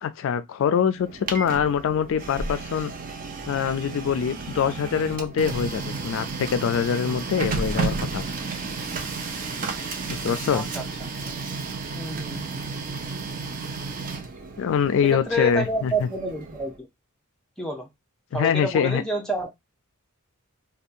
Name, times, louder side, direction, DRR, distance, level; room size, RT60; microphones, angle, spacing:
voice 1, 0.0-2.9 3.5-8.2 10.1-10.7 14.6-16.1 18.3-19.0, left 7 dB, 60° left, 0.3 m, -24 dB
Printer, 1.0-16.8, right 4 dB, 40° right, 0.5 m, -32 dB
voice 2, 10.5-10.8 11.9-12.7 15.0-16.9 17.6-17.9 18.3-19.5, right 1 dB, 5° left, 0.6 m, -29 dB
2.6 x 2.2 x 2.4 m
head